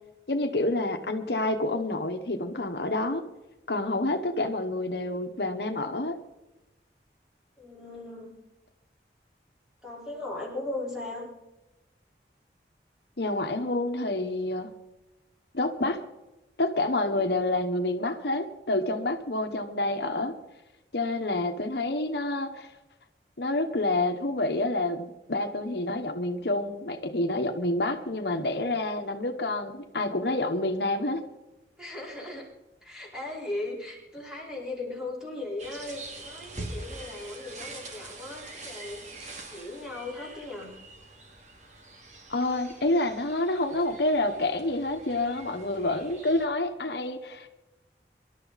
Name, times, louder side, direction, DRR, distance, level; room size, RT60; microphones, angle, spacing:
voice 1, 0.3-3.2 3.7-6.2 13.2-14.7 15.5-16.0 16.6-20.3 20.9-22.7 23.4-31.2 42.3-47.5, left 2 dB, 70° left, 6 dB, 1.2 m, -28 dB
voice 2, 7.6-8.4 9.8-11.3 31.8-32.5 32.8-39.1 39.5-40.7, left 2 dB, 5° right, -4 dB, 4.5 m, -37 dB
sound 1, 35.6-46.5, right 2 dB, 40° right, 2.4 m, -44 dB
24.0 x 12.0 x 4.1 m, 1.0 s
head